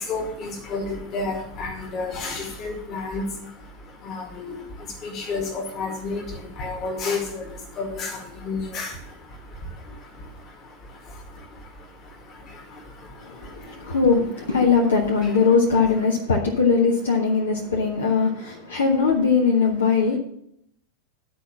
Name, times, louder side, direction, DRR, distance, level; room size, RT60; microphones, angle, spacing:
voice 1, 0.0-14.0 15.2-15.3, left 3 dB, 35° left, 2.1 m, -32 dB
voice 2, 13.2-20.2, left 5 dB, 65° left, 1.3 m, -20 dB
10.5 x 4.4 x 7.3 m
figure-of-eight pair, 90°, 0 cm